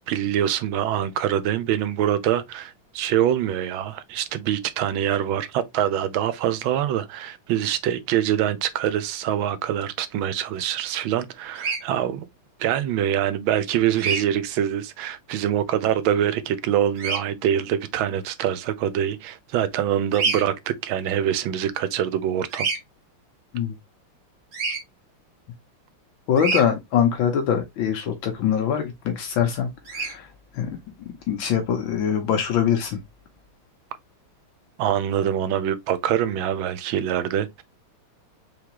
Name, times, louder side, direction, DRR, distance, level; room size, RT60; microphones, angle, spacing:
voice 1, 0.1-12.3 12.6-22.7 34.8-37.6, right 10 dB, 75° right, 1.4 m, -24 dB
Bird vocalization bird call bird song, 11.6-11.8 14.0-14.2 17.0-17.2 20.1-20.4 22.5-22.8 24.5-24.8 26.4-26.6 29.9-30.1, right 4 dB, 50° right, 2.2 m, -26 dB
voice 2, 26.3-30.3 30.5-30.8 31.3-33.0, left 8 dB, 70° left, 1.5 m, -23 dB
4.8 x 3.4 x 2.9 m
omnidirectional pair, 2.3 m